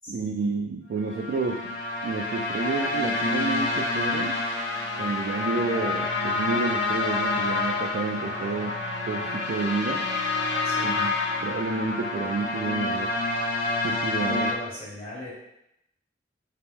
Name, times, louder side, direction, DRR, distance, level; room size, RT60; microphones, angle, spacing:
voice 1, 0.1-1.8 2.0-4.4 5.0-8.7 9.1-10.0 10.8-11.1 11.4-13.1 13.8-14.5, right 3 dB, 65° right, 1 dB, 0.3 m, -30 dB
sound 1, 1.0-14.5, left 3 dB, 80° left, 0.7 m, -28 dB
voice 2, 10.6-11.1 14.3-15.3, left 1 dB, 35° left, -6 dB, 1.1 m, -39 dB
3.0 x 2.9 x 3.5 m, 0.81 s
head